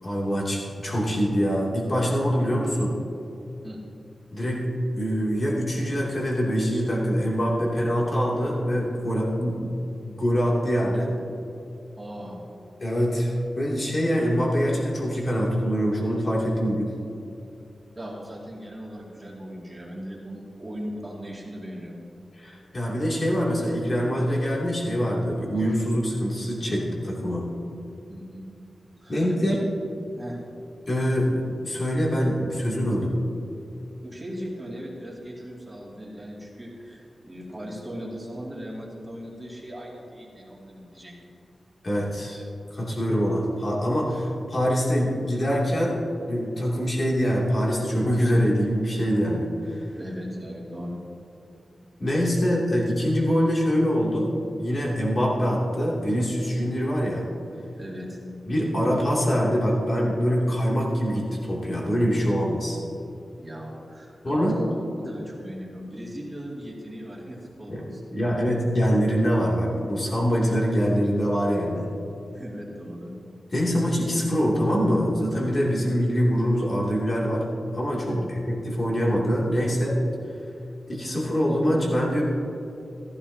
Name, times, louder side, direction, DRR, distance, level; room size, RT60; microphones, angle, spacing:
voice 1, 0.0-3.0 4.3-4.7 4.9-9.7 10.0-11.1 12.8-16.9 22.4-27.5 29.1-29.6 30.9-33.2 41.8-42.4 42.7-49.9 52.0-54.3 54.6-57.3 58.5-62.8 64.2-64.5 67.7-67.8 68.1-71.9 73.5-77.5 77.7-80.0 80.9-82.2, equal, 35° left, -4 dB, 2.7 m, -24 dB
voice 2, 12.0-12.4 17.9-22.0 28.1-28.4 29.0-29.6 30.2-30.4 34.0-41.1 50.0-51.0 57.8-58.2 63.4-68.2 72.3-73.1 78.1-78.3, equal, 15° right, -5 dB, 2.5 m, -38 dB
15.0 x 14.5 x 2.8 m, 2.8 s
wide cardioid pair, 140°, 0 cm